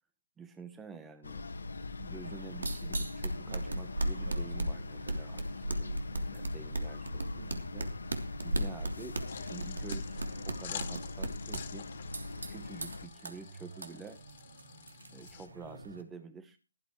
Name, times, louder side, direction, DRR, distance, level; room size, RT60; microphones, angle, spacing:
voice 1, 0.4-1.4 2.0-7.9 8.4-10.2 10.5-11.9 12.5-14.2 15.1-16.6, right 5 dB, 10° right, 9 dB, 0.9 m, -49 dB
sound 1, 1.2-13.1, left 3 dB, 75° left, 1.7 m, -43 dB
sound 2, 2.2-16.0, right 1 dB, 80° right, 3.0 m, -38 dB
sound 3, 9.3-15.5, left 9 dB, 35° left, 2.2 m, -48 dB
17.5 x 12.5 x 3.1 m, 0.31 s
hypercardioid pair, 160°, 0 cm